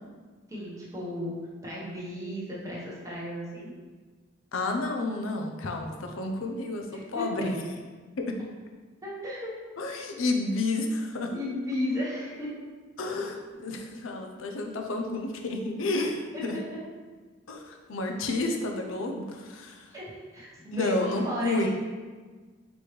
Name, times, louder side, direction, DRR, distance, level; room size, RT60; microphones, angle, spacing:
voice 1, 0.5-1.4 1.6-3.7 6.9-7.5 9.0-9.5 11.3-12.5 16.3-16.6 19.9-21.7, left 1 dB, 15° right, -7 dB, 1.1 m, -34 dB
voice 2, 4.5-7.6 8.2-8.3 9.8-11.3 13.0-16.6 17.5-19.9 20.7-21.7, left 2 dB, 75° left, 3 dB, 0.6 m, -30 dB
5.1 x 3.1 x 3.2 m, 1.4 s
head